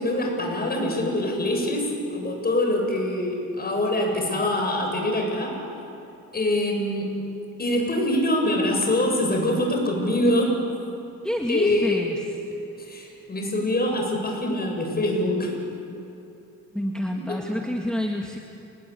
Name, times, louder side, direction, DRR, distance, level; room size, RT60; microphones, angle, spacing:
voice 1, 0.0-5.6 6.3-7.2 7.6-10.6 11.5-12.0 12.8-15.5, left 1 dB, 30° left, 1 dB, 7.8 m, -24 dB
voice 2, 11.2-12.3 16.7-18.4, left 1 dB, 5° left, 1 dB, 2.0 m, -28 dB
29.5 x 20.5 x 8.6 m, 2.8 s
cardioid pair, 90°, 30 cm